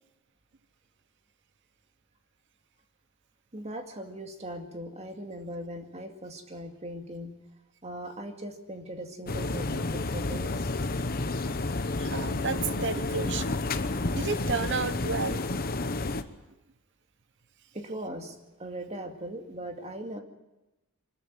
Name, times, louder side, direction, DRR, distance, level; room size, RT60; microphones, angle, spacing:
voice 1, 3.5-7.4 7.8-10.7 17.7-20.2, right 1 dB, 30° right, 2.2 m, -39 dB
sound 1, 9.3-16.2, left 2 dB, 45° left, 1.0 m, -30 dB
voice 2, 12.0-13.6 14.1-15.5, right 5 dB, 55° right, 0.9 m, -32 dB
24.0 x 14.0 x 9.5 m
head